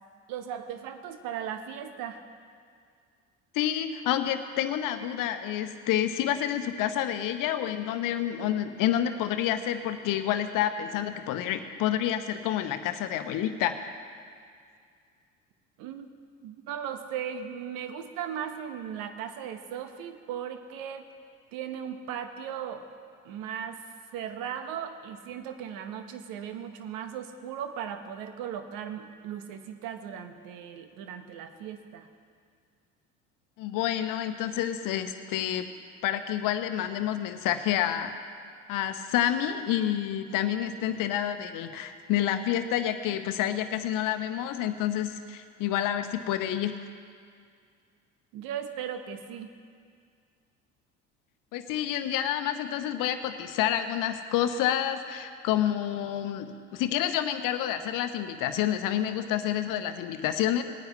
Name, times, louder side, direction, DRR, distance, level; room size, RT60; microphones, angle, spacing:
voice 1, 0.3-2.2 15.8-16.1 16.4-21.1 21.5-22.8 23.2-23.8 24.1-32.1 48.3-49.5, right 8 dB, 65° right, 8 dB, 1.1 m, -37 dB
voice 2, 3.5-13.9 33.6-35.7 36.0-38.1 38.7-46.8 51.5-60.6, left 11 dB, 55° left, 9 dB, 1.0 m, -28 dB
19.0 x 9.4 x 3.3 m, 2.2 s
hypercardioid pair, 65°, 38 cm